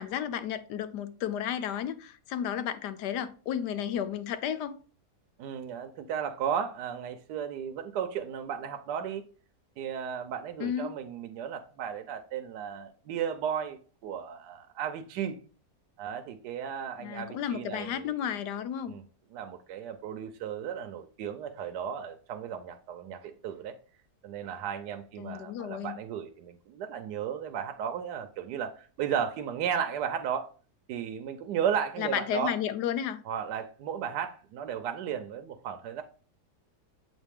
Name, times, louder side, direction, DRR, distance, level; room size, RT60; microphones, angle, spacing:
voice 1, 0.0-4.8 10.6-10.9 17.0-18.9 25.2-25.9 32.0-33.2, left 9 dB, 85° left, 1.3 m, -32 dB
voice 2, 5.4-9.2 9.8-15.4 16.0-18.1 18.9-19.0 19.3-23.8 24.2-30.5 30.9-32.6 33.2-36.0, right 8 dB, 85° right, 1.2 m, -34 dB
7.8 x 4.1 x 3.4 m
omnidirectional pair, 1.8 m